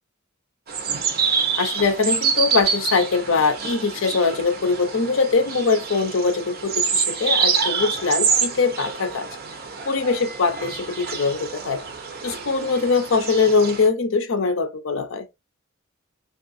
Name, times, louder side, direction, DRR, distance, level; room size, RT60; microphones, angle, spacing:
sound 1, 0.7-13.9, right 6 dB, 50° right, 0.6 m, -26 dB
voice 1, 1.6-9.4 9.9-11.8 12.2-15.3, left 4 dB, 70° left, 0.6 m, -22 dB
3.6 x 2.4 x 2.5 m
head